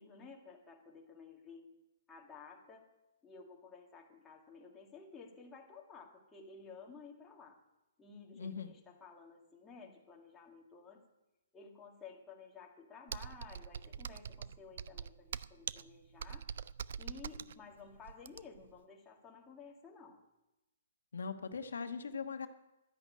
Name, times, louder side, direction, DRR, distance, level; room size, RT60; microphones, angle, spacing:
voice 1, 0.0-1.7 2.1-2.9 3.2-7.6 8.0-11.0 11.5-16.5 17.0-20.2, left 5 dB, 10° left, -2 dB, 2.1 m, -54 dB
voice 2, 8.4-8.7 21.1-22.5, left 5 dB, 90° left, 7 dB, 1.2 m, -40 dB
Computer keyboard, 13.1-18.7, right 7 dB, 60° right, 0.4 m, -44 dB
11.5 x 11.0 x 8.6 m, 0.96 s
hypercardioid pair, 155°, 0 cm